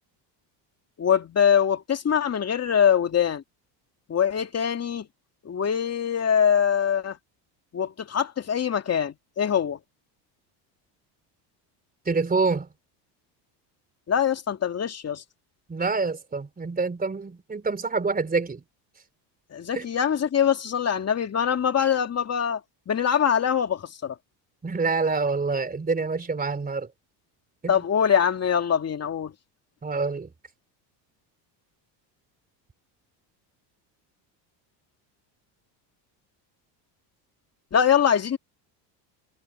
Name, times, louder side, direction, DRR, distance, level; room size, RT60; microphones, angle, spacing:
voice 1, 1.0-3.4 4.1-5.1 5.4-7.2 7.7-9.8 14.1-15.2 19.5-22.6 22.9-24.2 27.7-29.3 37.7-38.4, left 8 dB, 30° left, 2.7 m, -23 dB
voice 2, 12.1-12.7 15.7-18.6 19.7-19.9 24.6-26.9 27.6-27.7 29.8-30.3, right 4 dB, 20° right, 3.9 m, -26 dB
supercardioid pair, 110°, 48 cm